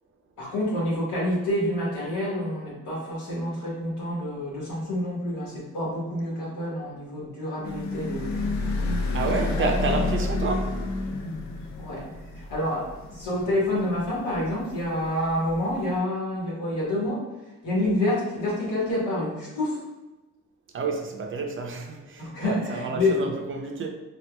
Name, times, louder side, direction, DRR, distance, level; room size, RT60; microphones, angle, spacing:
voice 1, 0.4-8.4 9.4-9.6 11.8-12.0 12.4-17.2 17.6-19.8 22.2-23.3, left 1 dB, 85° left, 1.5 m, -28 dB
sound 1, 7.6-15.9, left 3 dB, 65° left, 0.5 m, -30 dB
voice 2, 9.1-10.8 20.7-23.9, right 3 dB, 40° right, 0.6 m, -29 dB
3.5 x 2.9 x 2.3 m
cardioid pair, 90°, 30 cm